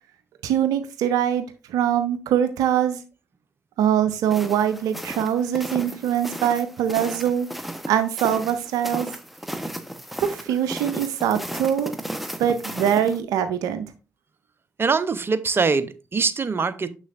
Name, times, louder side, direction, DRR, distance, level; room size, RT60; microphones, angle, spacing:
voice 1, 0.4-3.0 3.8-7.5 7.9-9.1 10.2-11.9 12.4-13.8, right 9 dB, 75° right, 10 dB, 0.5 m, -23 dB
sound 1, 4.3-13.2, right 1 dB, ahead, 1.0 m, -35 dB
voice 2, 14.8-16.9, right 4 dB, 40° right, 14 dB, 0.7 m, -23 dB
6.7 x 6.2 x 2.5 m, 0.32 s
hypercardioid pair, 40°, 6 cm